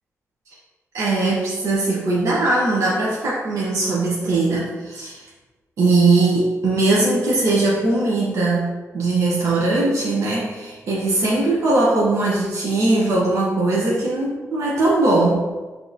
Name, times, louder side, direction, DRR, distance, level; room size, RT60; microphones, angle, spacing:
voice 1, 0.9-5.2 5.8-15.4, right 2 dB, 70° right, -6 dB, 0.8 m, -20 dB
6.0 x 2.8 x 2.6 m, 1.2 s
wide cardioid pair, 170°, 5 cm